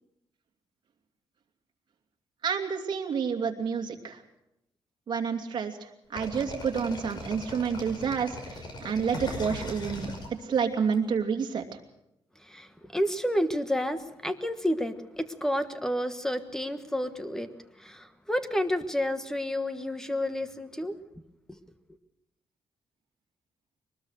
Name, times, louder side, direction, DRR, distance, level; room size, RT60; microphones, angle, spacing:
voice 1, 2.4-4.2 5.1-10.1 10.4-11.6, right 6 dB, 50° right, 2 dB, 2.7 m, -29 dB
sound 1, 6.2-10.9, left 1 dB, 50° left, 5.5 m, -39 dB
voice 2, 12.3-21.0 21.5-21.6, equal, 5° left, 10 dB, 1.3 m, -30 dB
23.0 x 20.0 x 6.5 m, 0.85 s
cardioid pair, 140°, 10 cm